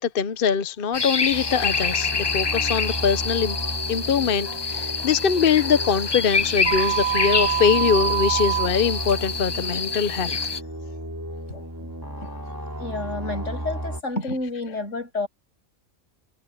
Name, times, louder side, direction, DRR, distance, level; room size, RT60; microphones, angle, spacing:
voice 1, 0.0-3.6 3.9-10.4, left 7 dB, 50° left, 0.9 m, -23 dB
sound 1, 0.9-10.6, left 5 dB, 30° left, 0.4 m, -27 dB
sound 2, 1.3-14.0, equal, 15° right, 2.7 m, -34 dB
sound 3, 6.7-8.7, right 13 dB, 40° right, 1.3 m, -24 dB
voice 2, 12.8-15.3, left 2 dB, 75° left, 7.5 m, -30 dB
omnidirectional pair, 1.3 m